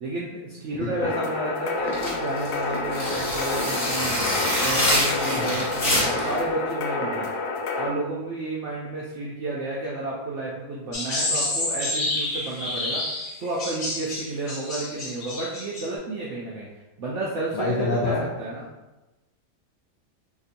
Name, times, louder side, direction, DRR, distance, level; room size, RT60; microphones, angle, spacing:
voice 1, 0.0-4.3 4.6-7.3 7.8-13.0 13.4-16.7 17.0-18.6, right 2 dB, 70° right, -4 dB, 0.7 m, -31 dB
sound 1, 1.0-7.9, left 3 dB, 85° left, 1.2 m, -29 dB
sound 2, 1.9-6.4, left 1 dB, 40° left, 1.3 m, -25 dB
sound 3, 10.9-15.9, left 2 dB, 55° left, 1.3 m, -29 dB
voice 2, 17.5-18.2, left 3 dB, 70° left, -5 dB, 0.6 m, -26 dB
4.1 x 3.0 x 2.5 m, 1.1 s
omnidirectional pair, 1.8 m